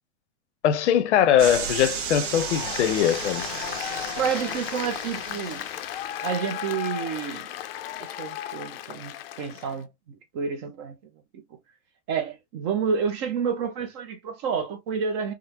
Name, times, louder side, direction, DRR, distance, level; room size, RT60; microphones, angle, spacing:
voice 1, 0.6-3.5, left 9 dB, 90° left, 0.8 m, -21 dB
sound 1, 1.4-6.0, right 7 dB, 45° right, 0.8 m, -34 dB
Applause, 2.3-9.8, left 12 dB, 60° left, 0.5 m, -35 dB
voice 2, 4.2-5.7 6.2-7.6 8.0-11.0 11.3-11.4 12.1-15.3, right 6 dB, 25° right, 0.4 m, -29 dB
3.6 x 2.0 x 2.9 m
supercardioid pair, 170°, 34 cm